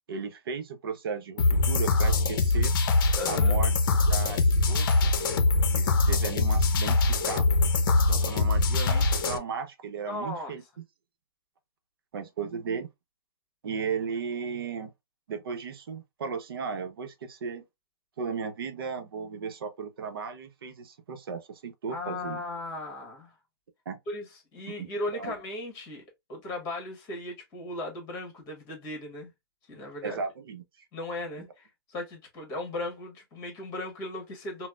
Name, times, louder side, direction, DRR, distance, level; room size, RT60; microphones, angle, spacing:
voice 1, 0.1-2.7 3.3-3.7 4.0-5.2 5.8-7.6 8.1-10.8 12.1-12.9 13.6-14.9 15.3-17.6 18.2-22.4 23.9-24.0 24.7-25.3 30.0-30.9, right 5 dB, 65° right, 0.7 m, -35 dB
sound 1, 1.4-9.4, left 3 dB, 55° left, 0.6 m, -23 dB
voice 2, 3.1-3.6 10.1-10.6 21.9-23.3 24.1-26.0 26.3-29.3 29.7-30.2 30.9-34.7, left 2 dB, 25° left, 1.3 m, -37 dB
4.1 x 2.0 x 2.3 m
hypercardioid pair, 155°, 13 cm